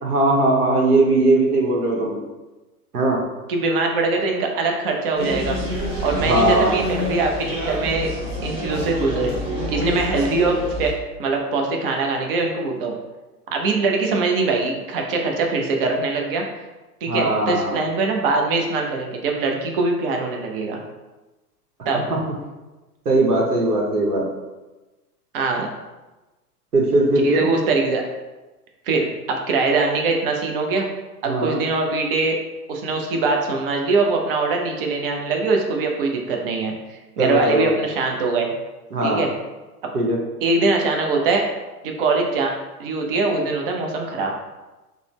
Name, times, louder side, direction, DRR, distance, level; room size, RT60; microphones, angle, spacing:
voice 1, 0.0-2.2 2.9-3.2 6.2-6.8 17.1-17.8 22.1-22.2 23.0-24.2 26.7-27.5 31.2-31.6 37.2-37.7 38.9-39.2 39.9-40.2, right 2 dB, 75° right, -2 dB, 0.9 m, -19 dB
voice 2, 3.5-5.6 6.0-8.1 8.4-9.4 9.7-10.9 11.2-12.9 13.5-16.4 17.0-20.8 21.9-22.1 25.3-25.7 27.2-28.0 28.9-30.9 31.2-32.4 32.7-38.5 39.0-39.3 40.4-41.4 41.8-42.5 42.8-44.3, right 3 dB, 40° right, 1 dB, 0.4 m, -22 dB
sound 1, 5.1-10.9, equal, 10° right, 1.0 m, -27 dB
3.7 x 2.0 x 3.0 m, 1.1 s
figure-of-eight pair, 100°, 47 cm